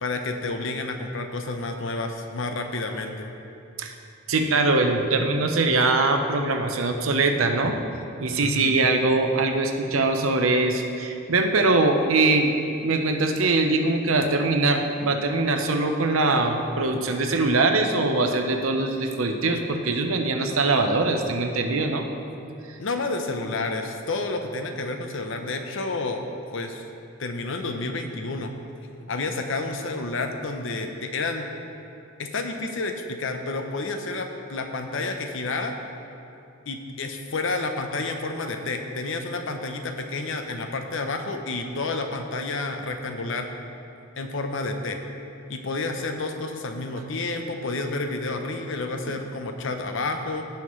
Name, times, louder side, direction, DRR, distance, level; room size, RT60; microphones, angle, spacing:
voice 1, 0.0-3.3 8.3-8.8 22.8-26.2 26.5-26.8 27.2-28.5 29.1-31.5 32.2-35.8 36.7-43.5 44.2-45.0 45.5-50.4, left 3 dB, 65° left, 5 dB, 0.8 m, -30 dB
voice 2, 4.3-7.8 8.2-12.6 12.8-22.0 22.7-22.8, right 3 dB, 85° right, 5 dB, 0.8 m, -22 dB
17.0 x 5.7 x 3.2 m, 2.7 s
head